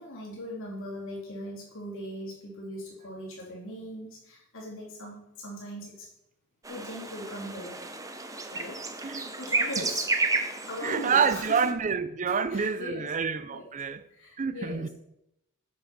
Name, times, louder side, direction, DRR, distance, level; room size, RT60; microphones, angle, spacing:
voice 1, 0.0-6.1 6.7-7.8 8.5-8.8 9.4-10.1 10.6-11.7 12.3-13.1 13.5-13.6 14.1-14.9, left 1 dB, 60° left, 3.6 m, -40 dB
sound 1, 6.6-11.7, right 3 dB, 15° right, 0.8 m, -32 dB
voice 2, 10.8-14.1 14.4-14.9, right 6 dB, 35° right, 0.5 m, -28 dB
10.0 x 6.5 x 5.9 m
head